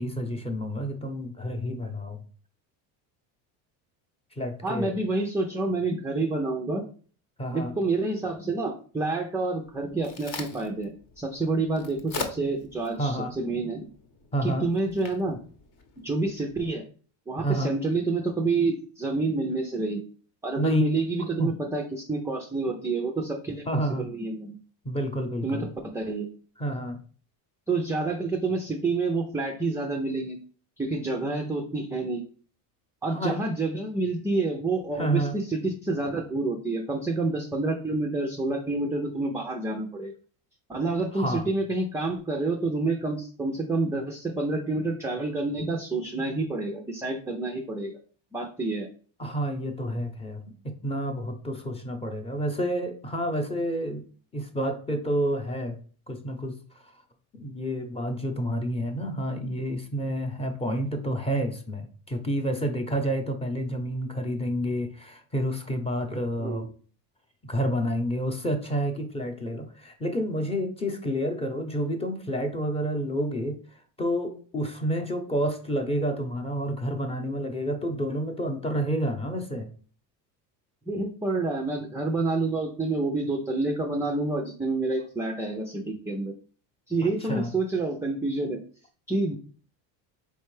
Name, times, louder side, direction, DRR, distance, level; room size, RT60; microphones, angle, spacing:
voice 1, 0.0-2.2 4.4-4.9 7.4-7.7 13.0-13.3 14.3-14.7 15.3-15.4 17.4-17.7 20.6-20.9 21.4-21.5 23.7-24.1 24.8-25.7 26.6-27.0 33.1-33.4 35.0-35.4 41.1-41.4 49.2-54.0 54.3-55.8 56.1-56.6 57.3-66.7 67.4-73.6 74.0-79.7 87.2-87.5, equal, 15° left, 5 dB, 0.7 m, -29 dB
voice 2, 4.6-6.8 7.5-13.9 14.4-15.4 16.0-16.8 17.3-20.0 20.4-24.6 25.4-26.3 27.7-30.4 30.8-32.2 33.0-40.1 40.7-48.0 48.3-48.9 66.4-66.7 80.9-86.3 86.9-88.6 89.1-89.3, right 3 dB, 5° right, 1 dB, 0.3 m, -28 dB
Crack, 9.6-16.5, left 4 dB, 45° left, 0.9 m, -42 dB
4.5 x 3.2 x 3.2 m, 0.41 s
supercardioid pair, 120°, 46 cm